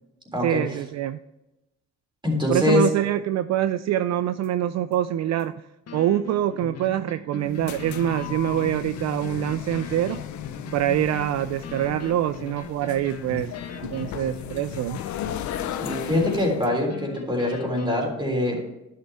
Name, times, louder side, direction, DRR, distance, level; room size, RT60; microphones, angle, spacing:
voice 1, 0.4-1.2 2.5-5.6 5.9-10.2 10.7-13.5 13.8-15.0, right 12 dB, 60° right, 12 dB, 0.4 m, -25 dB
voice 2, 2.2-2.8 15.8-18.6, left 1 dB, 15° right, 0 dB, 3.5 m, -24 dB
sound 1, 4.4-4.5 4.9-5.0 5.4-5.5 5.9-17.9, left 5 dB, 55° left, 1.3 m, -40 dB
sound 2, 7.4-16.7, left 11 dB, 70° left, 0.6 m, -35 dB
11.0 x 6.7 x 3.5 m, 0.96 s
cardioid pair, 90°, 30 cm